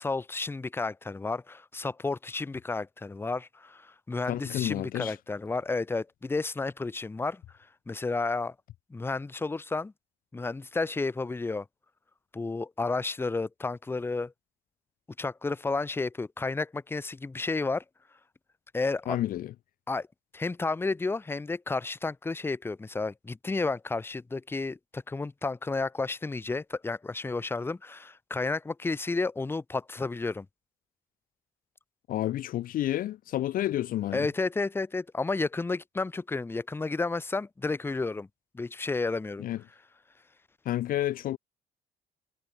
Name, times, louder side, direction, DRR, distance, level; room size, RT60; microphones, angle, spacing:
voice 1, 0.0-7.4 7.9-8.5 8.9-9.9 10.3-11.7 12.3-14.3 15.2-17.8 18.7-19.2 19.9-20.1 20.3-30.5 34.1-38.3 38.5-39.5, left 3 dB, 15° left, 0.8 m, -31 dB
voice 2, 4.3-5.2 19.1-19.5 32.1-34.3 39.4-39.6 40.7-41.4, left 13 dB, 55° left, 0.5 m, -30 dB
cardioid pair, 110°, 17 cm